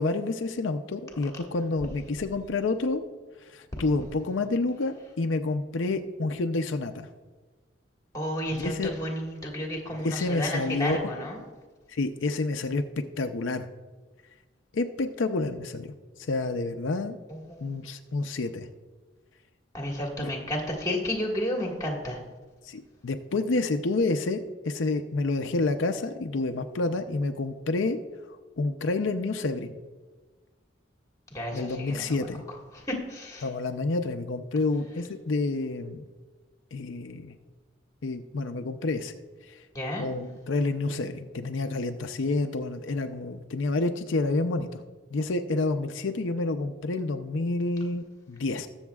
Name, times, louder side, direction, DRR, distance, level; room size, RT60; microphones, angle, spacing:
voice 1, 0.0-3.0 3.5-7.1 8.5-8.9 10.0-11.1 11.9-12.8 13.2-13.7 14.7-17.2 17.6-18.7 20.2-20.3 22.7-28.0 28.6-29.8 31.5-32.4 33.4-36.0 36.7-37.3 38.0-39.1 39.5-39.6 40.0-44.8 45.1-48.7, left 3 dB, 85° left, 7 dB, 0.6 m, -29 dB
voice 2, 8.1-11.4 17.3-17.7 19.7-22.2 31.3-32.2 32.7-33.5 39.7-40.1, equal, 15° left, 0 dB, 1.7 m, -32 dB
20.5 x 7.1 x 2.4 m, 1.3 s
head